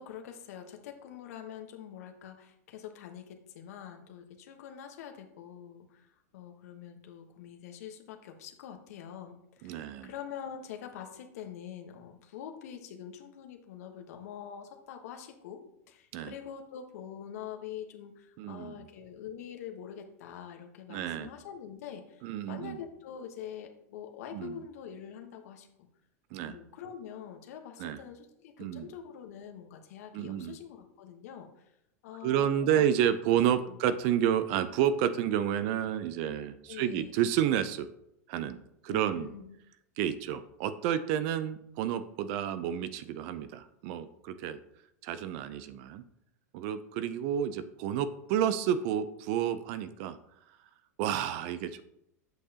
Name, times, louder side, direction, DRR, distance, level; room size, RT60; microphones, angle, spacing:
voice 1, 0.0-25.7 26.4-31.6 32.0-32.9 33.7-33.8 36.7-37.1 38.9-39.6, left 9 dB, 70° left, 5 dB, 1.2 m, -45 dB
voice 2, 9.6-10.1 16.1-16.3 18.4-18.9 20.9-21.3 22.2-22.8 24.3-24.6 26.3-26.6 27.8-28.0 28.6-28.9 30.1-30.6 32.2-37.9 38.3-38.6 38.8-39.3 40.0-44.6 45.0-46.0 46.5-50.2 51.0-51.8, right 10 dB, 55° right, 13 dB, 0.6 m, -30 dB
7.9 x 6.5 x 2.9 m, 0.80 s
hypercardioid pair, 105°, 9 cm